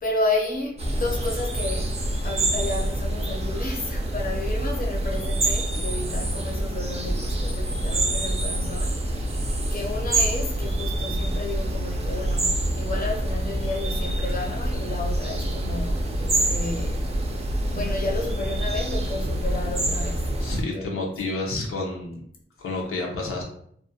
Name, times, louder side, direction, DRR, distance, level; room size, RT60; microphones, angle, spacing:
voice 1, 0.0-2.0 2.2-9.1 9.7-17.1 17.7-21.1, left 2 dB, 40° left, 0.6 m, -32 dB
sound 1, 0.8-20.6, right 1 dB, 30° right, 0.4 m, -26 dB
voice 2, 20.4-22.2 22.6-23.4, left 2 dB, 85° left, 0.6 m, -29 dB
2.4 x 2.1 x 2.6 m
wide cardioid pair, 100°, 21 cm